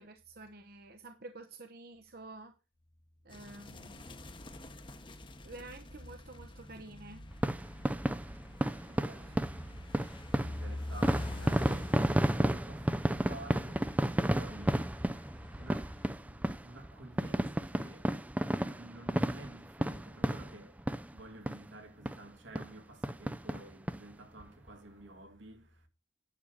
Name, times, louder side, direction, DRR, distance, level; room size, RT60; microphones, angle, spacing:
voice 1, 0.0-2.5 3.2-4.0 5.4-7.2 9.2-9.4, right 2 dB, 55° right, 0.9 m, -50 dB
sound 1, 3.3-16.1, left 1 dB, 25° left, 1.0 m, -45 dB
voice 2, 4.7-5.3 8.2-9.5 9.8-25.9, right 2 dB, 75° right, 2.3 m, -52 dB
sound 2, 7.3-21.2 21.5-21.6 22.0-22.2 22.5-22.7 23.0-24.0 24.4-24.5 24.7-24.8, right 1 dB, 10° right, 0.5 m, -32 dB
10.0 x 6.3 x 6.4 m
head